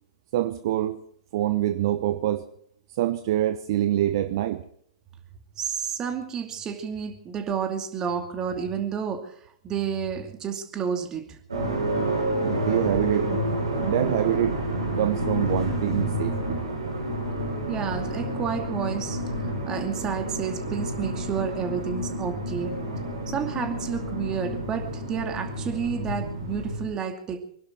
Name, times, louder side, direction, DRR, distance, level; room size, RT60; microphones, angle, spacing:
voice 1, 0.3-1.0 1.3-2.4 3.0-4.6 12.4-13.3 13.8-14.6 15.0-16.6, right 13 dB, 55° right, 0.9 m, -25 dB
voice 2, 5.6-9.3 9.6-11.4 17.7-22.8 23.3-27.4, right 7 dB, 25° right, 2.5 m, -30 dB
sound 1, 11.5-26.8, right 1 dB, 85° right, 7.7 m, -29 dB
25.0 x 11.5 x 4.5 m
hypercardioid pair, 110°, 3 cm